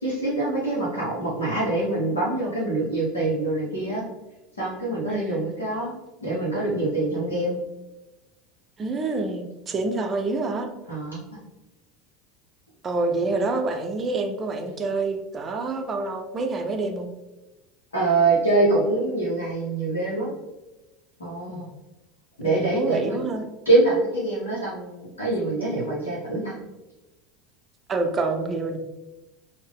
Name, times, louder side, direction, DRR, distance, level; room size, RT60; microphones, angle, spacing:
voice 1, 0.0-4.0 4.6-5.9 6.2-7.5 10.9-11.2 17.9-20.3 21.2-21.7 22.4-23.2 23.7-26.5, right 2 dB, 80° left, -6 dB, 0.7 m, -24 dB
voice 2, 5.1-5.4 8.8-10.7 12.8-17.1 21.5-21.7 22.4-23.5 27.9-28.8, right 3 dB, 30° right, 4 dB, 0.5 m, -27 dB
3.5 x 2.0 x 3.4 m, 1.0 s
figure-of-eight pair, 75°, 0 cm